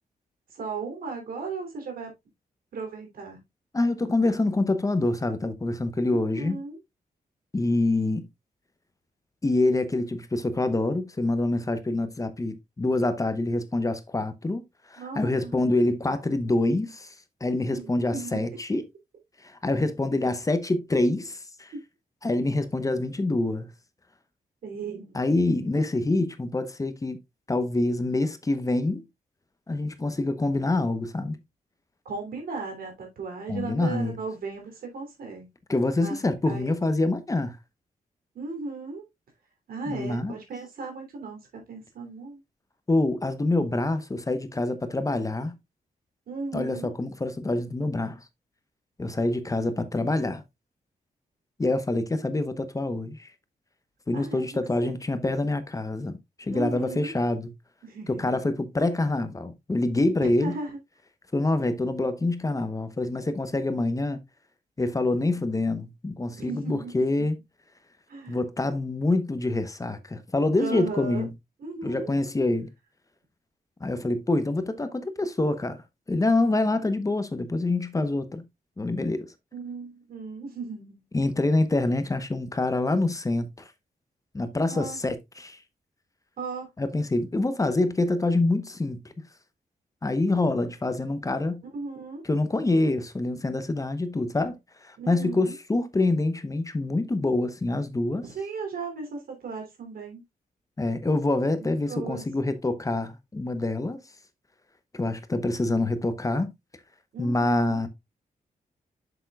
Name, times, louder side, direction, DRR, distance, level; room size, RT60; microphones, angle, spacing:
voice 1, 0.5-2.1 2.7-3.4 6.1-6.8 15.0-15.5 17.7-18.4 24.6-25.2 32.0-35.5 36.0-36.2 36.4-36.9 38.3-39.0 39.7-41.4 41.7-42.4 46.3-46.9 54.1-54.4 54.8-54.9 56.5-57.1 57.8-58.4 60.2-60.8 66.4-66.9 68.1-68.4 70.6-71.3 71.6-72.1 79.5-81.0 84.7-85.0 86.4-86.7 91.7-92.2 95.0-95.5 98.2-100.2 101.6-102.2 107.1-107.8, right 4 dB, 85° right, 3.1 m, -36 dB
voice 2, 3.7-6.6 7.5-8.3 9.4-14.6 14.9-17.1 17.4-18.8 19.4-21.7 22.2-23.7 25.1-27.2 27.5-29.0 29.7-31.4 33.5-34.2 35.7-37.6 39.9-40.3 42.9-45.5 46.5-48.2 49.0-50.4 51.6-53.3 54.1-57.5 58.1-60.5 61.3-64.2 64.8-67.4 68.3-71.3 71.8-72.7 73.8-75.8 76.1-78.4 78.8-79.3 81.1-83.7 84.3-85.6 86.8-89.0 90.0-91.6 92.2-98.2 100.8-104.0 104.9-106.5 107.2-107.9, left 2 dB, 25° left, 0.9 m, -26 dB
7.3 x 6.9 x 2.3 m
cardioid pair, 95°, 15 cm